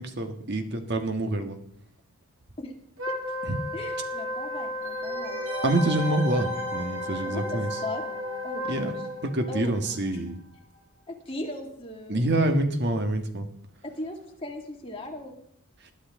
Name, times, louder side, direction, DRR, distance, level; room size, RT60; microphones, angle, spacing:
voice 1, 0.0-1.6 3.5-3.6 5.6-7.7 8.7-8.9 9.2-10.4 12.1-13.5 15.8-15.9, right 1 dB, 50° right, 6 dB, 1.4 m, -26 dB
Wind instrument woodwind instrument, 3.0-9.3, left 1 dB, 65° right, 2.1 m, -33 dB
voice 2, 3.7-5.4 7.2-8.0 8.4-8.6 9.5-9.7 11.1-12.5 13.8-15.3, left 2 dB, 25° left, 0 dB, 2.2 m, -37 dB
sound 1, 4.8-10.3 10.5-10.6, equal, 85° right, 7.0 m, -39 dB
20.5 x 11.0 x 3.7 m, 0.69 s
head